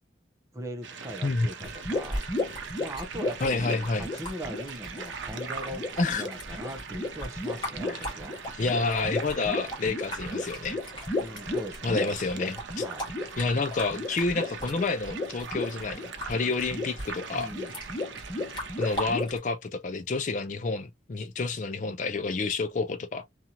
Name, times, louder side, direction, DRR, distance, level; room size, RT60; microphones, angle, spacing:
voice 1, 0.5-2.2 2.8-8.4 11.2-12.2 12.8-13.1 17.3-17.7, right 1 dB, 15° right, 0.6 m, -40 dB
sound 1, 0.8-19.2, right 6 dB, 85° right, 0.6 m, -42 dB
voice 2, 1.2-1.7 3.4-4.1 6.0-6.2 7.9-8.2 8.6-10.8 11.8-12.8 13.4-17.5 18.8-23.3, left 3 dB, 40° left, 0.4 m, -29 dB
sound 2, 1.6-19.4, left 2 dB, 25° left, 1.1 m, -34 dB
2.8 x 2.4 x 2.8 m
head